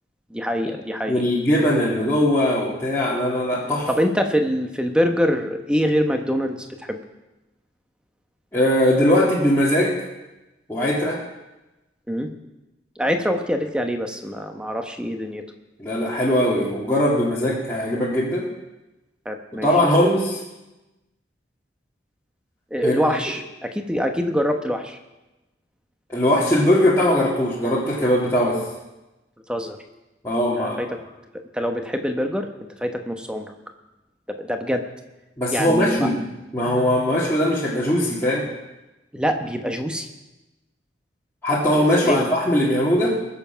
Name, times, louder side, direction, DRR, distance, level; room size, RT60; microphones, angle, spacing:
voice 1, 0.3-1.3 4.0-7.0 12.1-12.3 13.0-15.4 19.2-19.7 22.7-25.0 29.5-29.8 30.6-31.0 31.5-32.5 32.8-33.5 34.3-34.9 35.5-36.1 39.1-40.1 41.8-42.3, equal, 5° right, 5 dB, 1.0 m, -24 dB
voice 2, 1.1-3.9 8.5-10.0 10.7-11.2 15.8-18.5 19.6-20.4 22.8-22.9 26.1-28.6 30.2-30.8 35.4-36.2 36.5-38.5 41.4-43.1, left 1 dB, 15° left, -8 dB, 2.1 m, -20 dB
21.0 x 7.3 x 5.8 m, 1.0 s
head